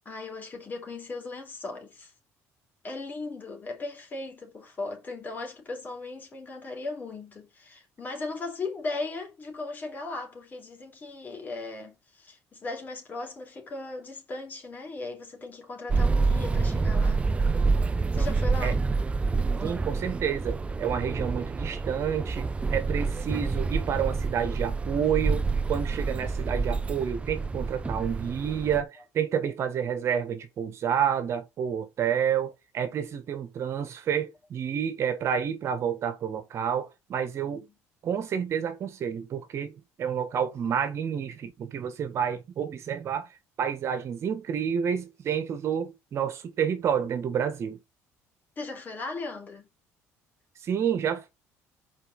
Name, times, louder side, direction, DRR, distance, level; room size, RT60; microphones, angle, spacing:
voice 1, 0.1-2.1 2.8-17.3 18.1-18.9 37.5-37.7 48.6-49.7, left 3 dB, 30° left, 3.8 m, -37 dB
sound 1, 15.9-28.8, right 4 dB, 20° right, 0.7 m, -27 dB
voice 2, 19.6-37.6 38.0-43.3 43.6-47.8 50.6-51.3, right 8 dB, 50° right, 1.6 m, -29 dB
5.6 x 4.8 x 5.3 m
cardioid pair, 110°, 6 cm